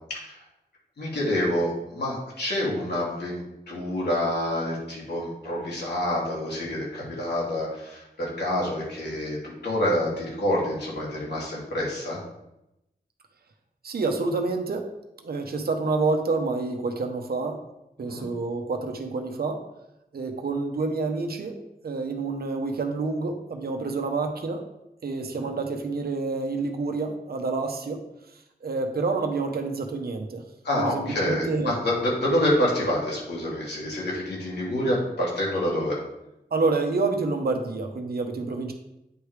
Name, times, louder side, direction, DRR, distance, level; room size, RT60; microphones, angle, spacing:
voice 1, 1.0-12.2 18.0-18.2 25.3-25.5 30.6-36.0, left 1 dB, 90° left, -5 dB, 2.5 m, -27 dB
voice 2, 13.8-14.9 15.2-17.6 18.0-19.6 20.1-21.6 21.8-24.7 25.0-28.0 28.6-30.4 30.8-31.8 36.5-38.7, right 3 dB, 65° right, 4 dB, 0.8 m, -28 dB
9.2 x 3.2 x 4.9 m, 0.89 s
wide cardioid pair, 115°, 17 cm